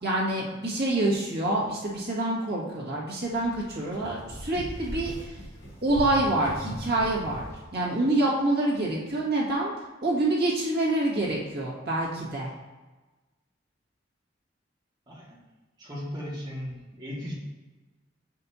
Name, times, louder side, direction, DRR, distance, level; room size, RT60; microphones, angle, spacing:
voice 1, 0.0-5.4 5.8-9.7 10.0-12.5, right 2 dB, 55° right, -6 dB, 2.0 m, -27 dB
sound 1, 3.3-7.6, equal, 75° left, 2.0 m, -39 dB
voice 2, 15.1-15.4 15.8-17.3, equal, 25° right, -6 dB, 1.9 m, -37 dB
6.6 x 5.5 x 2.9 m, 1.2 s
head